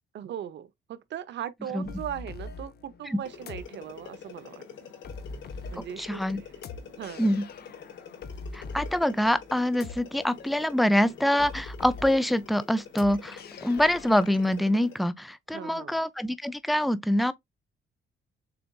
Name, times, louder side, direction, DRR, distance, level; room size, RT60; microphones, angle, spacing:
voice 1, 0.1-4.6 5.7-6.2 7.0-7.3 15.5-16.0, right 10 dB, 65° right, 0.7 m, -38 dB
sound 1, 1.9-14.6, left 3 dB, 55° left, 0.7 m, -43 dB
sound 2, 3.2-15.1, left 6 dB, 70° left, 1.2 m, -46 dB
voice 2, 6.0-6.4 7.2-7.4 8.5-17.3, left 1 dB, ahead, 0.4 m, -25 dB
6.8 x 2.5 x 2.3 m
cardioid pair, 90°, 20 cm